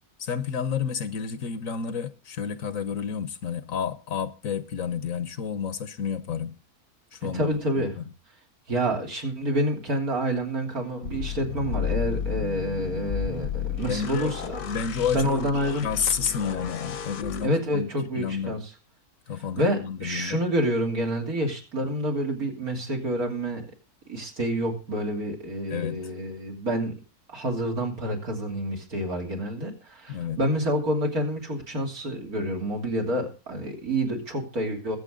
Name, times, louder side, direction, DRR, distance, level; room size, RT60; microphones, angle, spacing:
voice 1, 0.2-6.6 7.1-7.5 7.8-8.0 13.8-14.3 14.6-17.9 18.1-18.6 19.3-20.4 25.7-26.0 30.1-30.4, left 7 dB, 60° left, 1.3 m, -30 dB
voice 2, 7.2-7.9 8.7-14.6 15.1-15.8 17.4-18.7 19.6-23.7 24.1-27.0 27.3-35.0, right 1 dB, 65° right, 3.6 m, -28 dB
sound 1, 11.0-17.5, left 7 dB, 75° left, 1.6 m, -32 dB
22.0 x 8.0 x 3.8 m
omnidirectional pair, 1.6 m